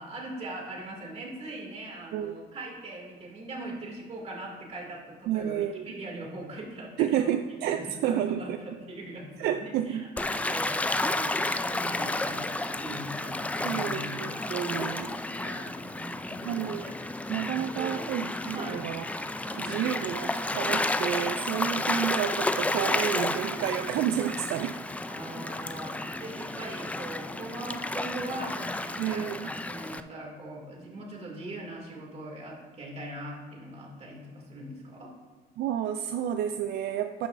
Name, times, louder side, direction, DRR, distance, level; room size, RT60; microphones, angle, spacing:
voice 1, 0.0-7.3 7.6-16.9 17.8-18.1 18.5-18.9 19.4-20.0 25.1-35.1, right 1 dB, 40° right, -1 dB, 2.5 m, -41 dB
voice 2, 5.3-5.8 7.0-8.6 9.4-10.1 13.6-15.2 16.5-17.0 17.3-19.0 19.6-24.8 29.0-29.5 35.6-37.3, right 10 dB, 75° right, 7 dB, 0.4 m, -30 dB
Gull seagull / Waves surf, 10.2-30.0, left 2 dB, 10° left, 0.3 m, -32 dB
11.5 x 6.0 x 2.6 m, 1.5 s
cardioid pair, 110°, 17 cm